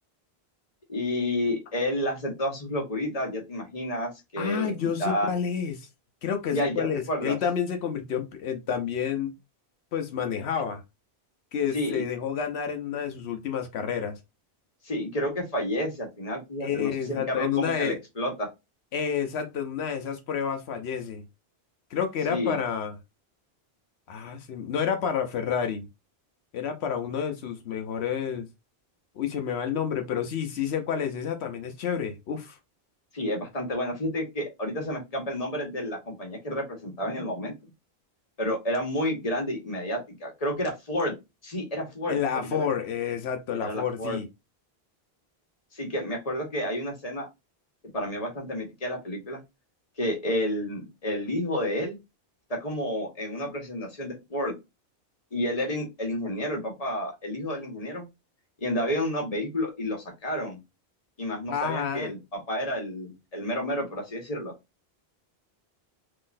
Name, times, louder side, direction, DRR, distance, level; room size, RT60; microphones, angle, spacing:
voice 1, 0.9-4.7 5.0-5.3 6.5-7.4 11.7-12.0 14.8-18.5 22.3-22.6 33.1-37.5 38.4-41.1 41.4-42.6 43.5-44.2 45.7-47.3 47.9-49.4 50.0-52.0 52.5-54.5 55.3-58.0 58.6-60.6 61.2-64.5, left 1 dB, 35° left, 1.4 m, -30 dB
voice 2, 4.4-5.9 6.2-9.3 9.9-10.8 11.5-14.2 16.6-18.0 18.9-21.2 21.9-23.0 24.1-25.9 26.5-28.5 29.2-32.6 42.1-44.3 61.5-62.1, left 7 dB, 85° left, 1.0 m, -29 dB
3.7 x 3.0 x 2.5 m
omnidirectional pair, 1.1 m